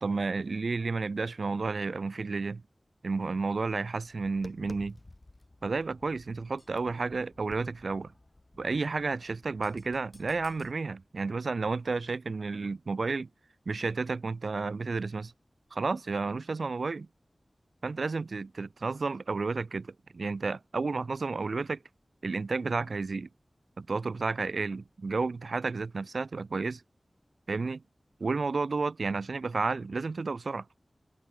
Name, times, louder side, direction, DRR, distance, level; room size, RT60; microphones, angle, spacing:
voice 1, 0.0-2.6 3.0-5.0 5.6-8.1 8.6-13.3 13.6-15.3 15.7-17.1 17.8-21.8 22.2-23.3 23.8-26.8 27.5-27.8 28.2-30.8, right 4 dB, 80° right, 1.5 m, -31 dB
Tap, 4.0-10.7, left 2 dB, 35° left, 2.9 m, -53 dB
wide cardioid pair, 70°, 0 cm